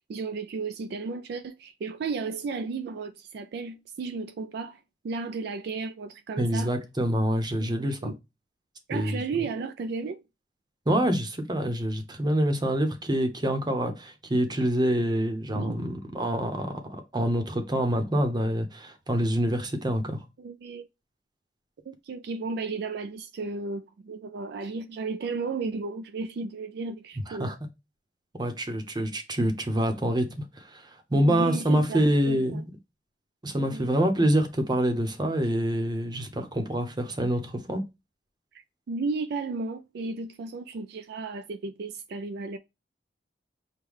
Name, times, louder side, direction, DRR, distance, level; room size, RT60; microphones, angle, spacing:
voice 1, 0.1-6.7 7.6-8.2 8.9-10.2 15.5-15.9 20.4-20.9 21.9-27.5 31.2-32.6 33.6-34.0 38.5-42.6, right 4 dB, 65° right, 0.3 m, -34 dB
voice 2, 6.4-8.1 8.9-9.2 10.9-20.2 27.3-27.5 28.3-32.7 33.4-37.8, right 1 dB, 25° right, 0.8 m, -26 dB
6.2 x 2.2 x 3.5 m
head